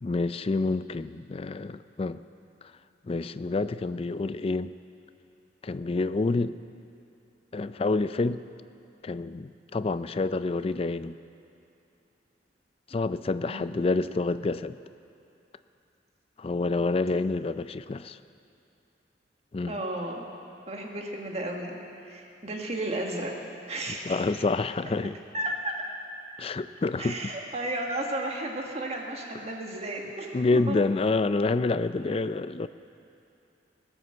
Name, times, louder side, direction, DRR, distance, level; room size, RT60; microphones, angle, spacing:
voice 1, 0.0-2.2 3.1-4.7 5.6-6.6 7.5-8.4 9.0-11.2 12.9-14.8 16.4-18.2 19.5-19.7 24.1-25.2 26.4-27.2 30.3-32.7, left 3 dB, 35° left, 14 dB, 0.4 m, -28 dB
voice 2, 19.7-20.3 20.7-23.4 23.7-24.3 25.3-25.8 27.0-30.9, right 1 dB, 35° right, 1 dB, 1.7 m, -33 dB
18.5 x 9.8 x 7.7 m, 2.7 s
head